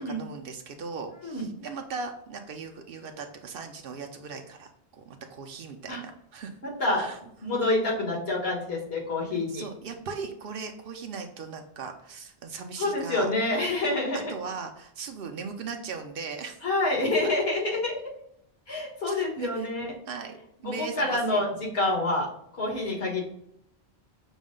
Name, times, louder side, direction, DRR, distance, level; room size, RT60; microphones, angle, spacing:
voice 1, 0.0-6.5 7.0-7.2 9.5-13.3 14.3-16.6 19.1-19.7 20.1-21.5, right 5 dB, 65° right, 4 dB, 0.8 m, -38 dB
voice 2, 6.6-7.1 7.4-9.7 12.8-14.3 16.6-18.0 18.7-19.9 20.6-22.3 22.6-23.2, left 2 dB, 75° left, -2 dB, 1.6 m, -27 dB
6.1 x 2.1 x 3.7 m, 0.72 s
omnidirectional pair, 1.1 m